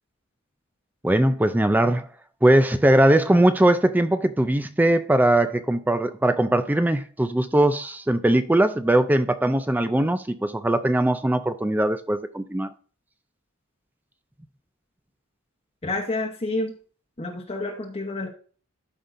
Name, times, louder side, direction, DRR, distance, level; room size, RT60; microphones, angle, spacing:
voice 1, 1.0-2.1 2.4-12.7, right 1 dB, 10° right, 0.3 m, -20 dB
voice 2, 15.8-16.7 17.2-18.3, left 2 dB, 30° left, 0.9 m, -29 dB
13.0 x 5.3 x 2.5 m
head